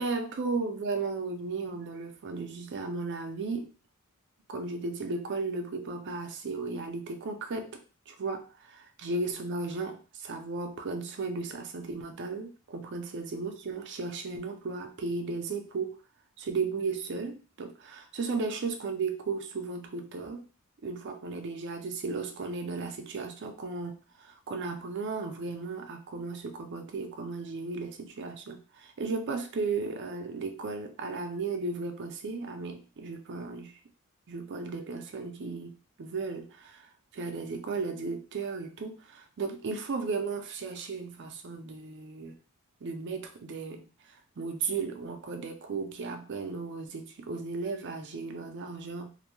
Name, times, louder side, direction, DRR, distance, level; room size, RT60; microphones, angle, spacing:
voice 1, 0.0-3.7 4.5-16.0 16.4-20.4 20.8-33.7 34.3-36.9 37.1-42.3 42.8-49.1, right 4 dB, 55° right, 5 dB, 0.5 m, -35 dB
2.5 x 2.2 x 3.0 m, 0.34 s
head